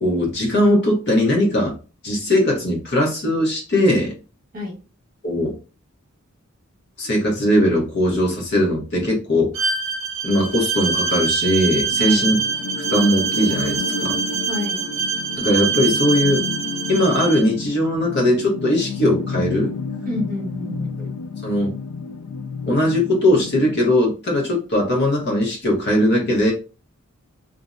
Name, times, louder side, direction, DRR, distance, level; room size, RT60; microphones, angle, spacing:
voice 1, 0.0-1.7 2.0-4.1 5.2-5.5 7.0-9.7 10.2-12.4 12.9-14.1 15.4-16.4 16.9-19.7 21.0-21.1 21.4-21.8 22.7-26.5, left 1 dB, 55° left, -2 dB, 0.9 m, -19 dB
Bowed string instrument, 9.5-17.5, right 6 dB, 65° right, 0.6 m, -24 dB
sound 1, 11.9-23.9, left 5 dB, 80° left, 0.3 m, -31 dB
voice 2, 12.0-12.3 14.5-14.8 20.0-21.0, left 1 dB, 45° right, -1 dB, 1.0 m, -28 dB
2.6 x 2.1 x 2.4 m, 0.34 s
head